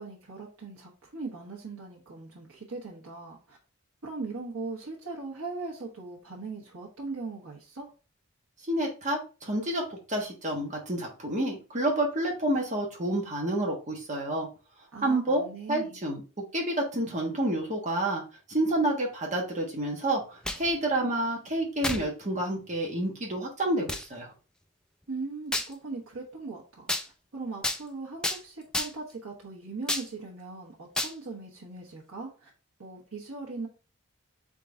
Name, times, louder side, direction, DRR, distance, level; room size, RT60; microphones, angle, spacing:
voice 1, 0.0-3.6 4.0-7.9 14.9-16.0 25.1-26.9 27.3-32.5 32.8-33.7, right 3 dB, 80° right, -3 dB, 1.1 m, -39 dB
voice 2, 8.7-14.5 15.0-15.4 15.7-16.2 16.5-18.2 18.5-24.3, right 1 dB, 35° right, 0 dB, 1.3 m, -29 dB
sound 1, 20.2-20.7 21.8-22.1 22.7-22.8 23.9-24.1 25.5-25.7 26.9-27.1 27.6-27.8 28.2-28.4 28.7-29.1 29.9-30.1 30.9-31.1, left 1 dB, 5° left, 0.3 m, -30 dB
3.8 x 3.8 x 3.7 m, 0.34 s
head